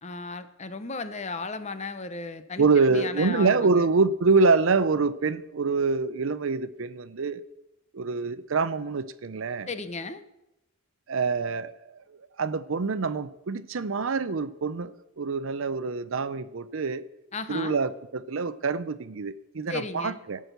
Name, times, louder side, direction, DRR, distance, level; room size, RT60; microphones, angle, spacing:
voice 1, 0.0-2.6 2.9-3.9 9.7-10.2 17.3-17.8 19.7-20.2, left 3 dB, 30° left, 11 dB, 0.7 m, -35 dB
voice 2, 2.6-7.4 7.9-9.7 11.1-11.7 12.1-17.0 17.5-20.4, right 4 dB, 65° right, 15 dB, 0.6 m, -25 dB
17.0 x 6.2 x 6.8 m, 0.92 s
head